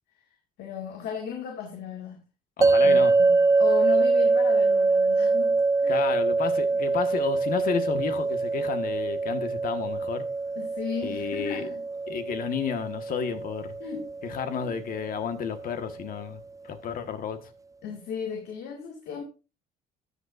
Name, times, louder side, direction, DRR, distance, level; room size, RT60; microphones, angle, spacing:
voice 1, 0.6-2.2 2.8-6.0 10.6-11.8 13.8-14.1 14.6-14.7 17.8-19.2, left 7 dB, 75° left, 2.1 m, -35 dB
voice 2, 2.6-3.1 5.9-10.3 11.0-11.7 12.1-13.7 14.2-17.4, left 7 dB, 55° left, 1.5 m, -31 dB
sound 1, 2.6-15.7, right 3 dB, 20° right, 0.5 m, -24 dB
13.0 x 8.4 x 2.6 m
cardioid pair, 110°, 17 cm